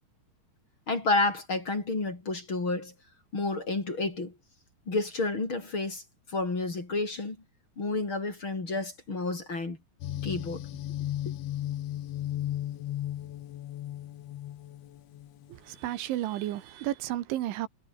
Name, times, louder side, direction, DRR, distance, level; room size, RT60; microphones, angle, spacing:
voice 1, 0.9-2.9 3.3-4.3 4.9-6.0 6.3-7.4 7.8-9.8 10.2-10.7, left 3 dB, 30° left, 4.7 m, -30 dB
sound 1, 10.0-15.5, left 13 dB, 85° left, 4.1 m, -35 dB
voice 2, 15.5-17.7, right 14 dB, 85° right, 3.9 m, -32 dB
omnidirectional pair, 5.3 m